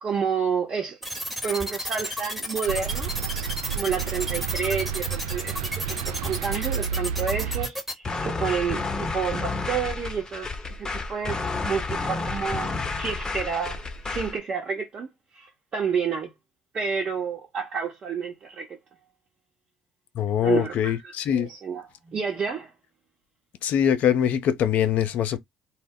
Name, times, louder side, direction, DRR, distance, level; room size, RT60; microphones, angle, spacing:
voice 1, 0.0-1.0 1.4-3.1 3.7-12.7 13.0-15.1 15.3-16.3 16.7-18.7 20.4-20.9 21.3-22.7, right 6 dB, 45° right, 0.9 m, -30 dB
sound 1, 1.0-7.9, equal, ahead, 0.9 m, -32 dB
sound 2, 2.7-7.7, right 8 dB, 75° right, 0.3 m, -31 dB
sound 3, 8.0-14.4, left 3 dB, 25° left, 0.8 m, -30 dB
voice 2, 20.1-21.5 23.6-25.4, left 9 dB, 60° left, 0.4 m, -23 dB
2.1 x 2.0 x 3.6 m
hypercardioid pair, 60°, 3 cm